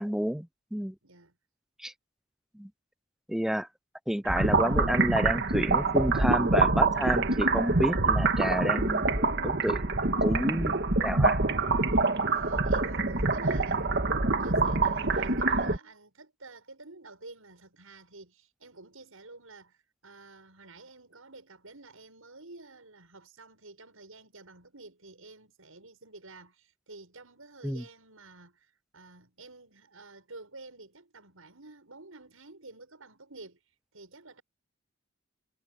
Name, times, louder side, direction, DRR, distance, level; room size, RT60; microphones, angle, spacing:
voice 1, 0.0-1.0 1.8-1.9 2.5-2.7 3.3-3.7 4.1-9.9 10.2-11.4 27.6-27.8, equal, ahead, 0.4 m, -30 dB
voice 2, 1.0-1.4 12.3-33.6 33.9-34.4, right 3 dB, 85° right, 6.9 m, -50 dB
sound 1, 4.3-15.8, right 3 dB, 55° right, 1.8 m, -25 dB
head